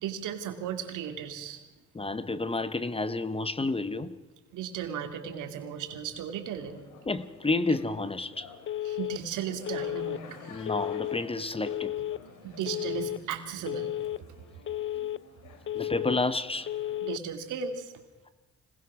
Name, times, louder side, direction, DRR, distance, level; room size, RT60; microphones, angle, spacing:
voice 1, 0.0-1.6 4.5-6.8 8.8-10.6 12.4-13.9 15.7-15.9 17.0-17.9, right 8 dB, 85° right, 2.4 m, -36 dB
voice 2, 1.9-4.1 7.1-8.5 10.5-11.9 15.7-16.7, left 3 dB, 20° left, 1.0 m, -30 dB
sound 1, 6.6-17.0, left 5 dB, 90° left, 2.9 m, -52 dB
Telephone, 8.7-9.2 9.7-10.2 10.7-11.2 11.7-12.2 12.7-13.2 13.7-14.2 14.7-15.2 15.7-16.2 16.7-17.2, left 12 dB, 40° left, 0.6 m, -33 dB
25.5 x 19.0 x 6.2 m
cardioid pair, 90°, 30 cm